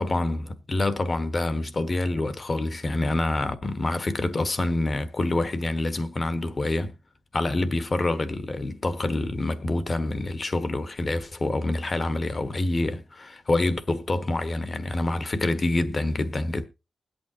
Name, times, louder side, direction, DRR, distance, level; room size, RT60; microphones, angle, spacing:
voice 1, 0.0-6.9 7.3-16.6, left 2 dB, 40° left, 1.3 m, -26 dB
20.5 x 8.3 x 2.8 m
cardioid pair, 70°, 0 cm